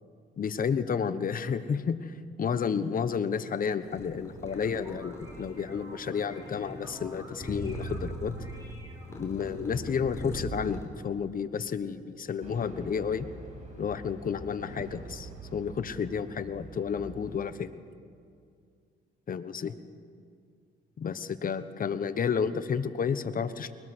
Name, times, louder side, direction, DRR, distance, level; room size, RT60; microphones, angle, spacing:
voice 1, 0.4-8.3 9.1-13.2 13.8-17.8 19.3-19.7 21.0-23.7, left 6 dB, 45° left, 12 dB, 1.0 m, -31 dB
sound 1, 3.8-10.8, right 1 dB, 15° left, 4.3 m, -41 dB
sound 2, 4.5-9.5, right 1 dB, 20° right, 5.3 m, -50 dB
sound 3, 12.4-17.4, right 1 dB, 40° right, 5.7 m, -45 dB
21.5 x 20.5 x 6.2 m, 2.3 s
cardioid pair, 90°, 20 cm